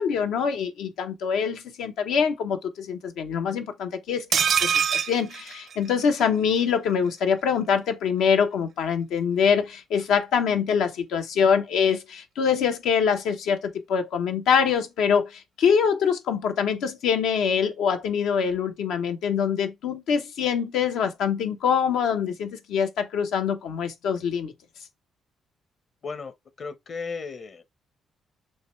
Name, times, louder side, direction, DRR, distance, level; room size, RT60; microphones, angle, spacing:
voice 1, 0.0-4.3 4.6-24.5, left 7 dB, 85° left, 0.8 m, -24 dB
sound 1, 4.3-6.3 6.6-6.7 6.9-7.1, right 7 dB, 60° right, 0.5 m, -24 dB
voice 2, 26.0-27.6, left 4 dB, 45° left, 0.9 m, -35 dB
6.4 x 2.2 x 3.1 m
cardioid pair, 90°, 0 cm